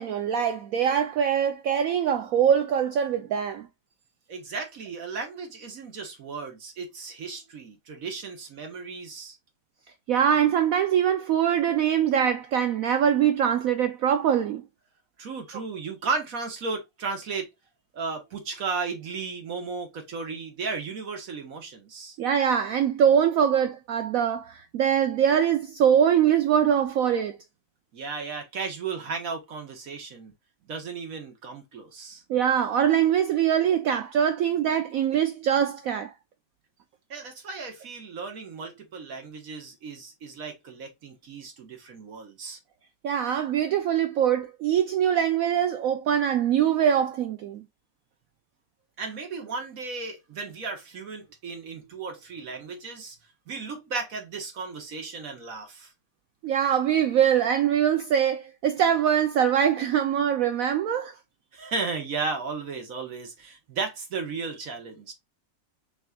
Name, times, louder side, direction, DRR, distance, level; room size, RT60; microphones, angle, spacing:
voice 1, 0.0-3.7 10.1-14.6 22.2-27.4 32.3-36.1 43.0-47.6 56.4-61.1, right 9 dB, 85° right, 0.7 m, -23 dB
voice 2, 4.3-9.4 15.2-17.5 17.9-22.2 27.9-30.3 30.7-32.2 37.1-42.6 49.0-53.2 53.5-55.9 61.5-65.1, right 4 dB, 55° right, 1.4 m, -35 dB
5.9 x 3.0 x 2.3 m
omnidirectional pair, 2.0 m